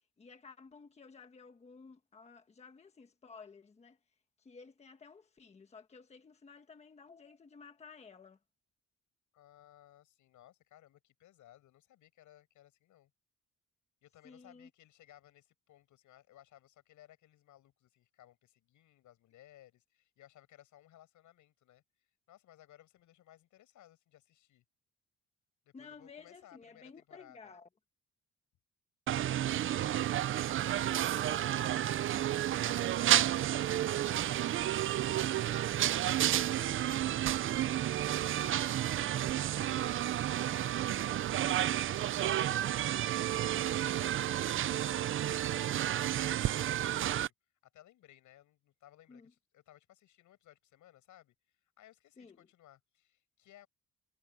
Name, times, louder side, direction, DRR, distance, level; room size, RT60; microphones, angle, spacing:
voice 1, 0.2-4.0 4.4-8.4 14.2-14.7 25.7-27.7 38.4-39.4 49.1-49.3 52.2-52.5, left 5 dB, 20° left, 1.3 m, -54 dB
voice 2, 9.3-13.1 14.0-24.6 25.7-27.5 29.3-37.2 39.8-43.9 44.6-47.2 47.7-53.7, left 13 dB, 85° left, 7.2 m, -61 dB
sound 1, 29.1-47.3, right 12 dB, 45° right, 0.5 m, -31 dB
cardioid pair, 170°, 30 cm